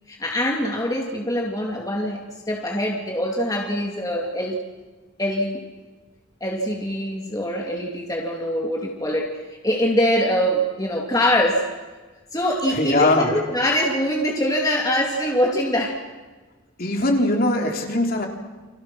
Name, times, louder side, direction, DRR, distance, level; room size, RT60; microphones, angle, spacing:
voice 1, 0.1-4.6 5.2-5.7 6.4-11.7 12.3-16.0, equal, 15° left, -1 dB, 2.4 m, -23 dB
voice 2, 12.7-13.3 16.8-18.3, left 2 dB, 45° left, 1 dB, 3.4 m, -20 dB
29.5 x 26.5 x 6.1 m, 1.3 s
head